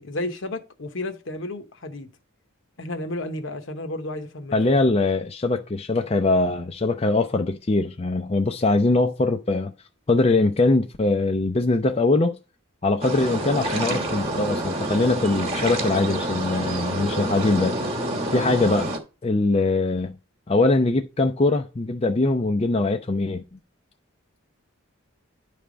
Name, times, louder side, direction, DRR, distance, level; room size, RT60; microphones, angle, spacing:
voice 1, 0.0-2.1 2.8-4.7, left 1 dB, 65° left, 0.9 m, -32 dB
voice 2, 4.5-9.7 10.1-12.4 12.8-17.8 18.3-18.9 19.2-20.2 20.5-23.4, left 2 dB, 30° left, 0.4 m, -22 dB
sound 1, 13.0-19.0, right 1 dB, 30° right, 1.2 m, -28 dB
9.9 x 3.4 x 5.0 m
head